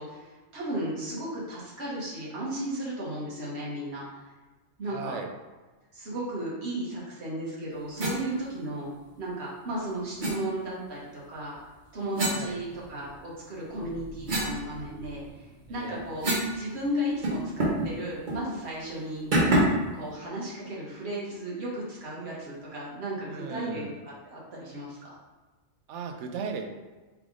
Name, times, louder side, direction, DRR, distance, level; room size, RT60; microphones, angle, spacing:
voice 1, 0.0-4.2 4.8-5.1 5.9-8.9 9.2-11.6 11.9-15.2 15.7-16.3 16.5-19.3 19.9-23.9 24.2-25.1, right 1 dB, 60° right, -6 dB, 1.4 m, -35 dB
voice 2, 4.9-5.3 12.3-12.6 15.7-16.0 23.3-23.9 25.9-26.7, right 5 dB, 80° right, 5 dB, 0.9 m, -36 dB
sound 1, 8.0-8.2 10.2-10.4 12.1-13.2 13.7-16.6 16.8-16.9 17.2-17.9 18.3-18.4 19.3-19.9, right 1 dB, 45° right, 1.0 m, -28 dB
3.5 x 3.3 x 3.7 m, 1.2 s
omnidirectional pair, 1.2 m